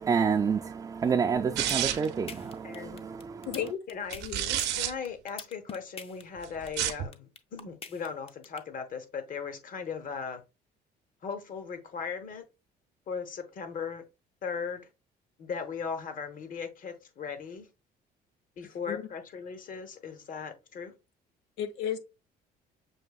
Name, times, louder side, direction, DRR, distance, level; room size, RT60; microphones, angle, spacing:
voice 1, 0.0-3.5, right 6 dB, 20° right, 0.3 m, -29 dB
sound 1, 1.6-8.6, left 5 dB, 35° left, 0.6 m, -43 dB
sound 2, 1.6-2.2 4.1-4.9 6.6-7.1, right 11 dB, 85° right, 0.6 m, -29 dB
voice 2, 2.6-3.0 3.9-4.3 4.8-10.4 11.2-12.4 13.1-14.0 14.4-14.9 15.4-17.7 18.6-20.9, left 6 dB, 55° left, 0.9 m, -38 dB
voice 3, 3.5-3.8 4.2-4.6 18.9-19.0 21.6-22.0, left 9 dB, 90° left, 0.8 m, -33 dB
6.3 x 2.7 x 2.3 m
cardioid pair, 110°, 17 cm